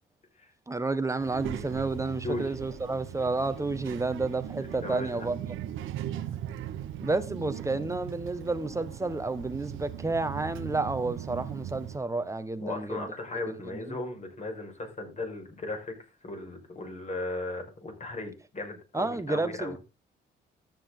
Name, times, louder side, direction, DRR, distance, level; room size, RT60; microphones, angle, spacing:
voice 1, 0.7-5.5 7.0-13.1 13.5-14.0 18.9-19.8, right 3 dB, 15° right, 1.4 m, -31 dB
Child speech kid speaking, 1.2-12.0, right 11 dB, 85° right, 1.1 m, -39 dB
voice 2, 4.8-5.3 12.6-16.0 16.2-19.8, left 2 dB, 35° left, 5.4 m, -36 dB
13.0 x 9.0 x 3.9 m
cardioid pair, 90°, 20 cm